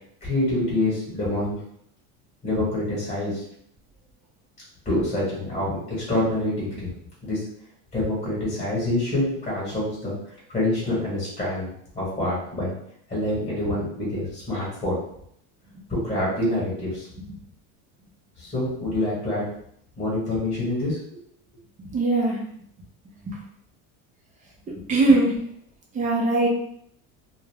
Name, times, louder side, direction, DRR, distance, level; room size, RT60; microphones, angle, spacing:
voice 1, 0.2-1.6 2.4-3.4 4.8-6.9 7.2-7.4 7.9-10.1 10.5-12.7 13.1-15.0 15.9-17.1 18.4-19.5 20.0-21.0, left 1 dB, 15° left, -6 dB, 1.2 m, -26 dB
voice 2, 21.8-22.4 23.2-23.4 24.9-25.4 25.9-26.5, right 2 dB, 20° right, -2 dB, 0.5 m, -20 dB
2.3 x 2.0 x 3.3 m, 0.69 s
cardioid pair, 150°, 39 cm